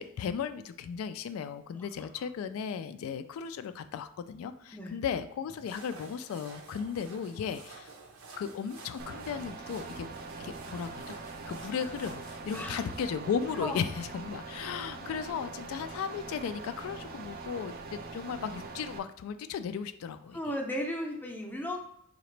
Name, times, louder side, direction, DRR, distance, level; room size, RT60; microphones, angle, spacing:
voice 1, 0.0-7.9 8.4-10.1 10.4-20.4, left 7 dB, 85° left, 14 dB, 0.3 m, -36 dB
sound 1, 5.5-13.1, right 3 dB, 90° right, 0.6 m, -50 dB
sound 2, 9.0-19.0, right 3 dB, 45° right, 0.4 m, -43 dB
voice 2, 12.5-12.9 13.5-13.8 20.3-21.8, equal, 10° left, 1 dB, 0.5 m, -35 dB
3.9 x 2.9 x 3.2 m, 0.74 s
head